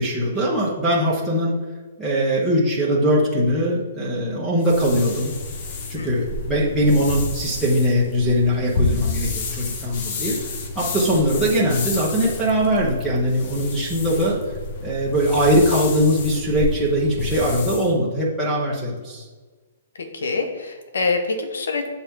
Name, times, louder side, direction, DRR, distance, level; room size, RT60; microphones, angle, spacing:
voice 1, 0.0-1.5 2.0-5.3 5.9-10.4 10.7-14.4 14.8-19.3, equal, 5° right, -8 dB, 1.2 m, -21 dB
sound 1, 4.6-17.9, left 3 dB, 50° left, 1.0 m, -30 dB
voice 2, 5.9-6.3 20.0-21.9, left 3 dB, 80° left, 5 dB, 1.1 m, -25 dB
6.9 x 4.2 x 3.8 m, 1.4 s
hypercardioid pair, 140°, 0 cm